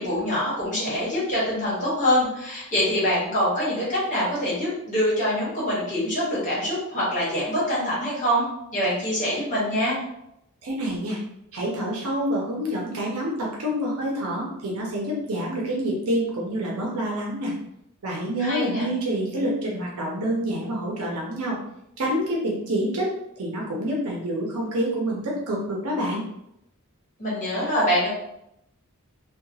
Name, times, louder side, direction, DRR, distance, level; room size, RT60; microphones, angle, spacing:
voice 1, 0.0-8.5 8.7-10.0 18.4-18.8 27.2-28.1, equal, 35° left, -7 dB, 1.2 m, -24 dB
voice 2, 10.6-11.2 11.5-17.5 18.0-21.6 22.0-23.1 23.4-26.2, equal, 70° right, -3 dB, 0.6 m, -27 dB
2.8 x 2.2 x 2.6 m, 0.81 s
head